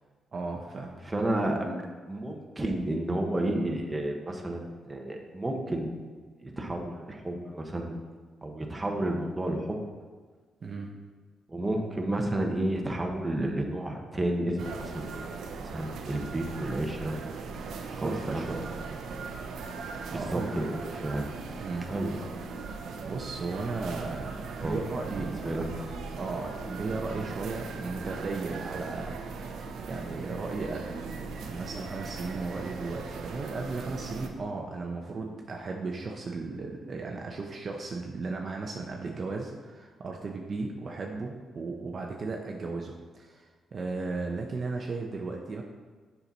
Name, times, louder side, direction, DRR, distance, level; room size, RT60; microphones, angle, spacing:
voice 1, 0.3-1.0 10.6-10.9 18.0-18.7 20.1-20.6 21.6-21.9 23.0-24.4 24.6-25.6 26.2-29.6 29.9-45.6, right 3 dB, 50° right, 1 dB, 0.8 m, -35 dB
voice 2, 1.0-5.9 6.4-8.0 8.4-9.8 11.5-15.3 15.6-17.3 17.5-18.8 19.1-19.2 20.1-21.4 21.9-22.2 24.6-24.8 25.2-25.7, right 1 dB, 20° right, 2 dB, 1.2 m, -31 dB
sound 1, 14.6-34.3, right 4 dB, 80° right, 0.7 m, -39 dB
7.0 x 5.8 x 4.1 m, 1.5 s
cardioid pair, 75°, 0 cm